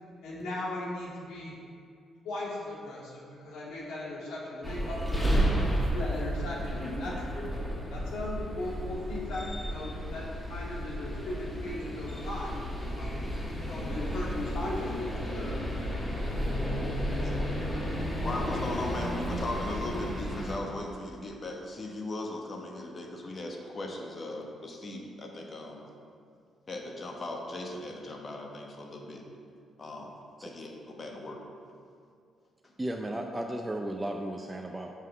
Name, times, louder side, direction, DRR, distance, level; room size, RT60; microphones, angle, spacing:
voice 1, 0.2-1.5 2.2-5.3 5.9-7.1 7.9-12.6 13.0-13.2 13.7-15.5, left 1 dB, 85° left, -5 dB, 1.8 m, -38 dB
sound 1, 4.6-20.6, equal, 10° left, 1.3 m, -32 dB
voice 2, 18.2-25.8 26.7-29.2 29.8-30.1 30.4-31.4, left 1 dB, 40° left, 1 dB, 1.2 m, -38 dB
voice 3, 32.8-34.9, right 1 dB, 15° right, 2 dB, 0.5 m, -34 dB
5.6 x 5.6 x 6.1 m, 2.3 s
cardioid pair, 90°, 0 cm